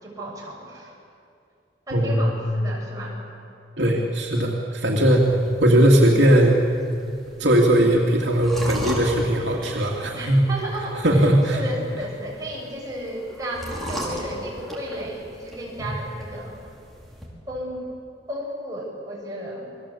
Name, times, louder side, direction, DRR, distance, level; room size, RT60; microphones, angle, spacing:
voice 1, 0.0-0.9 1.9-3.2 10.1-11.3 11.5-16.6 17.5-17.9 18.3-19.6, equal, 20° right, -4 dB, 6.9 m, -33 dB
voice 2, 1.9-2.3 3.8-5.3 5.6-6.6 7.4-10.4 11.0-11.6 15.8-15.9, right 1 dB, 70° right, -1 dB, 2.7 m, -18 dB
sound 1, 5.2-17.3, equal, ahead, 5.0 m, -38 dB
28.5 x 22.0 x 8.6 m, 2.5 s
head